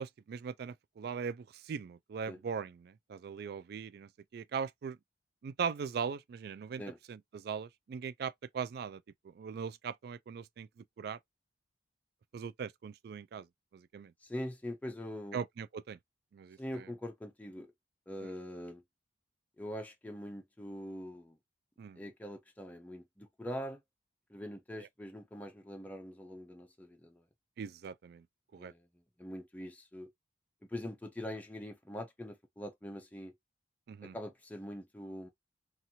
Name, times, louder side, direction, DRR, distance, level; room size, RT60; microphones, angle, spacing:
voice 1, 0.0-5.0 5.4-6.8 7.1-10.7 11.0-11.2 12.3-13.5 13.7-14.1 15.3-16.0 16.3-16.6 18.2-18.3 21.8-22.0 27.6-28.2 28.5-28.7 33.9-34.1, right 6 dB, 55° right, 0.3 m, -40 dB
voice 2, 14.2-15.4 16.6-17.7 18.1-18.8 19.6-21.4 22.0-23.8 24.3-27.2 28.6-30.1 30.6-33.4 34.0-35.3, equal, 10° left, 0.4 m, -43 dB
2.9 x 2.4 x 2.7 m
head